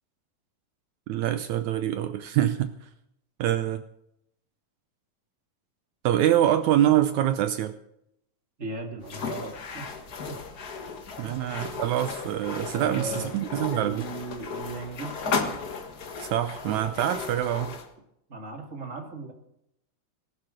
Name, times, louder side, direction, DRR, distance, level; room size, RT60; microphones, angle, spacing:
voice 1, 1.1-2.9 3.4-3.8 6.0-7.7 11.2-14.0 16.2-17.8, right 12 dB, 75° right, 10 dB, 1.8 m, -25 dB
voice 2, 8.6-10.5 11.2-11.4 12.7-13.3 13.7-15.4 18.3-19.3, right 2 dB, 25° right, 2 dB, 2.1 m, -37 dB
sound 1, 9.0-17.9, left 5 dB, 50° left, 1.1 m, -35 dB
18.5 x 11.5 x 6.4 m, 0.80 s
omnidirectional pair, 3.9 m